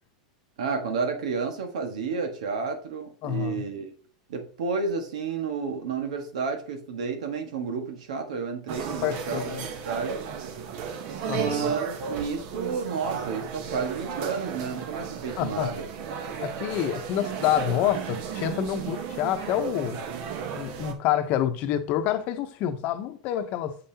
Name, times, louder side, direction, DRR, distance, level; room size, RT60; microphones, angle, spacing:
voice 1, 0.6-3.9 4.3-10.3 11.2-15.8 17.2-17.3, right 5 dB, 85° right, 1.6 m, -31 dB
voice 2, 3.2-3.7 9.0-9.6 11.3-11.7 15.4-15.7 16.4-20.0 20.5-23.8, left 11 dB, 45° left, 0.8 m, -27 dB
sound 1, 8.7-20.9, right 7 dB, 55° right, 1.1 m, -34 dB
7.5 x 5.5 x 2.9 m
supercardioid pair, 135°, 4 cm